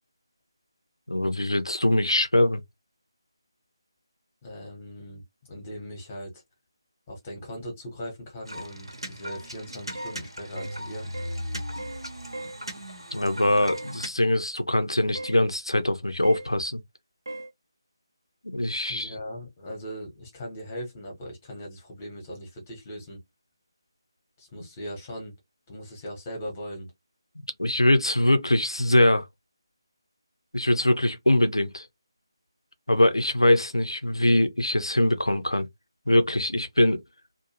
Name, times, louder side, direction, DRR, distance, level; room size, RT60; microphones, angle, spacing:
voice 1, 1.1-2.6 13.1-16.8 18.5-19.1 27.6-29.3 30.5-31.9 32.9-35.7 36.1-37.0, left 1 dB, 80° left, 0.6 m, -22 dB
voice 2, 4.4-6.4 7.1-11.1 18.9-23.2 24.4-25.4 25.7-26.9, equal, 20° left, 1.1 m, -39 dB
sound 1, 8.5-14.1, equal, 80° right, 1.0 m, -37 dB
sound 2, 10.0-10.2 10.6-10.8 11.1-11.4 11.8-12.0 12.3-12.6 13.7-13.9 15.2-15.4 16.2-16.5 17.3-17.5, right 2 dB, 55° right, 0.7 m, -38 dB
2.6 x 2.3 x 2.9 m
figure-of-eight pair, 155°, 3 cm